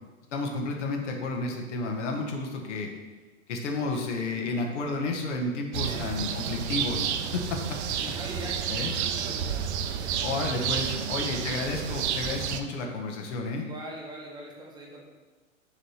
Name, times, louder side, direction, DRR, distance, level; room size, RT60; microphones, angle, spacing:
voice 1, 0.3-2.9 3.5-7.6 8.7-8.9 10.2-13.7, left 3 dB, 60° left, 2 dB, 1.3 m, -31 dB
sound 1, 5.7-12.6, right 8 dB, 55° right, 0.6 m, -30 dB
voice 2, 5.9-6.6 8.0-10.3 10.5-11.1 13.6-15.0, right 2 dB, 10° right, -4 dB, 0.9 m, -43 dB
6.3 x 3.2 x 5.7 m, 1.3 s
hypercardioid pair, 135°, 40 cm